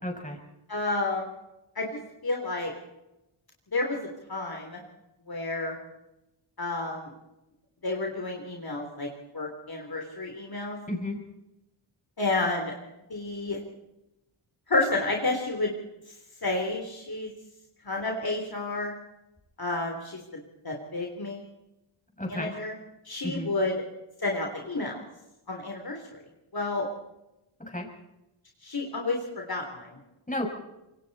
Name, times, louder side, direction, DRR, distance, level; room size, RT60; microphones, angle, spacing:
voice 1, 0.0-0.4 10.9-11.2 22.2-22.5 23.2-23.5 27.6-27.9 30.3-30.5, left 1 dB, 15° left, 2 dB, 6.4 m, -32 dB
voice 2, 0.7-1.2 1.8-1.9 2.2-2.7 3.7-4.0 4.3-4.8 5.3-5.8 6.6-7.1 7.8-9.1 9.3-10.8 12.2-12.7 13.1-13.6 14.7-15.7 16.4-17.3 17.8-18.9 19.6-20.2 20.6-21.4 22.3-22.7 23.1-23.7 24.2-25.0 25.5-26.0 26.5-26.9 28.6-29.2 29.5-30.0, left 2 dB, 45° left, 1 dB, 3.6 m, -30 dB
26.5 x 23.0 x 4.3 m, 0.94 s
wide cardioid pair, 80°, 49 cm